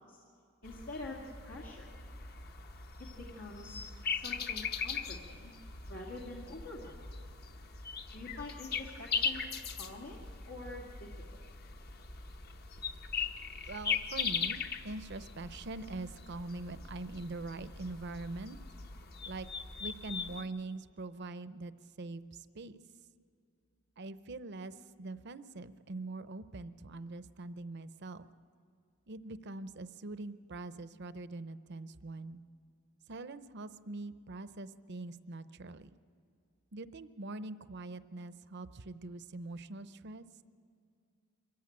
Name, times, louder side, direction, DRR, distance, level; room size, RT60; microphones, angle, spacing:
voice 1, 0.6-1.9 3.2-3.8 4.1-5.5 5.9-7.0 8.1-9.4 9.7-11.4, left 2 dB, 85° left, -2 dB, 2.1 m, -46 dB
sound 1, 0.6-20.4, left 5 dB, 50° left, 1.0 m, -40 dB
voice 2, 13.7-18.6 19.3-19.5 19.8-21.7 22.0-22.8 24.0-28.3 29.1-32.4 33.1-35.9 36.7-40.3, right 2 dB, 55° right, 13 dB, 0.7 m, -43 dB
24.0 x 14.5 x 8.7 m, 2.3 s
head